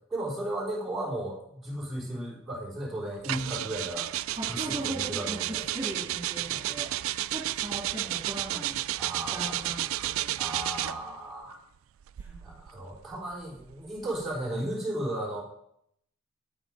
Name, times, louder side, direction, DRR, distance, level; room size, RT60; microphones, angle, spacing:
voice 1, 0.1-4.1 4.5-5.7 6.5-7.0 9.0-11.6 12.4-15.4, right 1 dB, ahead, -6 dB, 4.0 m, -35 dB
sound 1, 3.2-11.1 12.0-14.5, right 15 dB, 85° right, 0.3 m, -32 dB
voice 2, 4.4-5.4 5.7-6.9 7.3-8.8 9.3-10.4 12.2-12.6, right 1 dB, 20° right, -5 dB, 3.1 m, -38 dB
9.5 x 8.4 x 5.1 m, 0.74 s
head